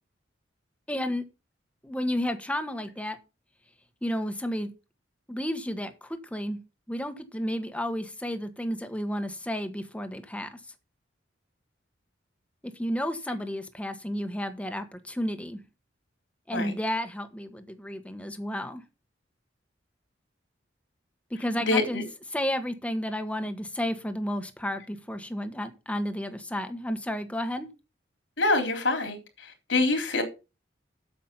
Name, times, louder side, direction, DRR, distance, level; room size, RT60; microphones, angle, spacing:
voice 1, 0.9-1.2 1.8-3.2 4.0-4.7 5.3-6.6 6.9-10.6 12.6-15.6 16.5-18.8 21.3-22.0 22.3-27.7, equal, 5° left, 1.3 m, -32 dB
voice 2, 21.6-22.0 28.4-30.2, left 2 dB, 85° left, 3.7 m, -26 dB
8.7 x 7.4 x 5.6 m
head